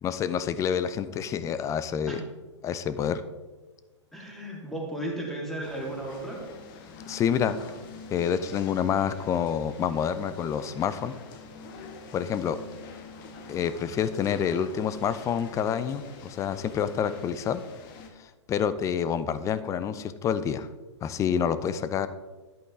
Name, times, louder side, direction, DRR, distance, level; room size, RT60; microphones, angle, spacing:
voice 1, 0.0-2.2 2.6-3.2 7.1-7.6 8.1-11.1 12.1-12.6 13.5-17.6 18.2-20.7 21.0-22.1, left 8 dB, 20° left, 13 dB, 0.5 m, -28 dB
voice 2, 4.1-6.4, right 1 dB, ahead, -2 dB, 2.4 m, -34 dB
sound 1, 5.6-18.1, left 4 dB, 45° left, 1.4 m, -46 dB
10.5 x 8.3 x 3.7 m, 1.3 s
hypercardioid pair, 115°, 15 cm